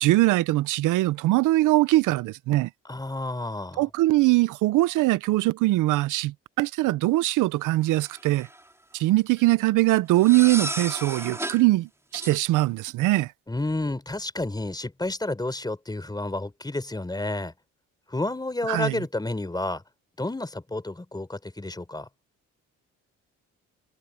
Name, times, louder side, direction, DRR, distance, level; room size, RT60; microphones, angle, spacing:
voice 1, 0.0-2.7 3.8-8.5 8.9-13.3 18.7-19.0, right 18 dB, 85° right, 0.6 m, -22 dB
voice 2, 2.8-3.8 13.5-17.5 18.1-19.8 20.2-22.1, left 2 dB, 15° left, 4.7 m, -30 dB
sound 1, 7.9-8.6 10.2-11.6 12.1-12.4, right 1 dB, 10° right, 3.2 m, -33 dB
cardioid pair, 90°, 30 cm